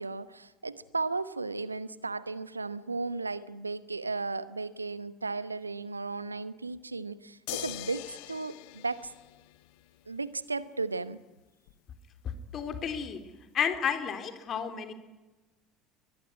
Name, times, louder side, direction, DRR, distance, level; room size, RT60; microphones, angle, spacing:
voice 1, 0.0-9.1 10.1-11.2, right 3 dB, 85° right, 17 dB, 0.9 m, -35 dB
sound 1, 7.5-10.0 11.7-11.8, left 16 dB, 60° left, 1.5 m, -42 dB
voice 2, 12.5-13.2 13.5-14.9, left 8 dB, 40° left, 8 dB, 3.5 m, -31 dB
22.5 x 20.5 x 9.8 m, 1.1 s
figure-of-eight pair, 65°, 0 cm